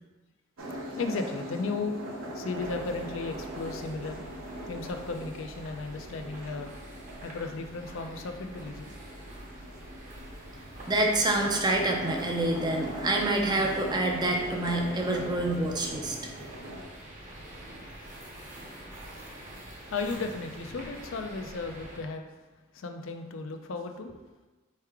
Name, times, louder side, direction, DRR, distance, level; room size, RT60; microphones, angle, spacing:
sound 1, 0.6-16.8, right 1 dB, 80° right, 0.8 m, -41 dB
voice 1, 1.0-2.0 2.3-4.2 4.7-6.7 7.2-8.9 19.1-22.3 22.7-24.2, left 3 dB, 70° left, 5 dB, 0.4 m, -35 dB
sound 2, 2.5-22.0, right 1 dB, 40° right, 0.9 m, -46 dB
voice 2, 10.9-16.2, right 1 dB, 20° right, 1 dB, 0.5 m, -27 dB
4.5 x 3.2 x 3.4 m, 1.2 s
head